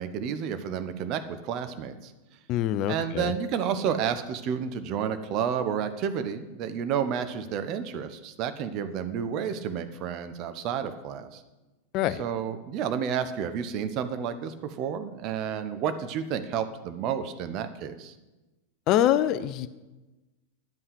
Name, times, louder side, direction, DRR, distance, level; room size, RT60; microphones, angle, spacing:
voice 1, 0.0-2.1 2.9-11.4 12.2-18.1, right 8 dB, 40° right, 10 dB, 0.8 m, -31 dB
voice 2, 2.5-3.3 11.9-12.2 18.9-19.7, left 12 dB, 40° left, 14 dB, 0.4 m, -24 dB
9.2 x 5.5 x 8.1 m, 1.1 s
figure-of-eight pair, 90°, 0 cm